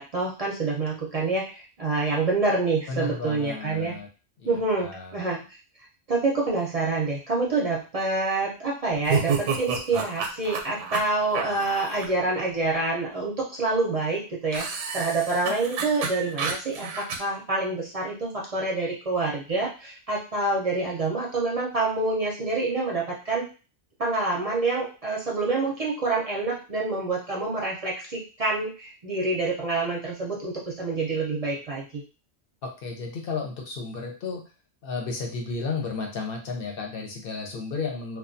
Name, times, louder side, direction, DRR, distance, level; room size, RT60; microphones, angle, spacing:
voice 1, 0.0-4.0 4.4-5.4 6.1-14.7 14.9-23.5 24.0-32.0, right 3 dB, 45° right, -3 dB, 0.5 m, -27 dB
voice 2, 2.9-4.1 4.4-5.2 32.6-34.4 34.8-38.2, left 4 dB, 60° left, 2 dB, 0.8 m, -33 dB
sound 1, 9.0-12.1 14.5-17.2, right 5 dB, 90° right, 0.9 m, -29 dB
2.3 x 2.2 x 2.5 m, 0.34 s
omnidirectional pair, 1.2 m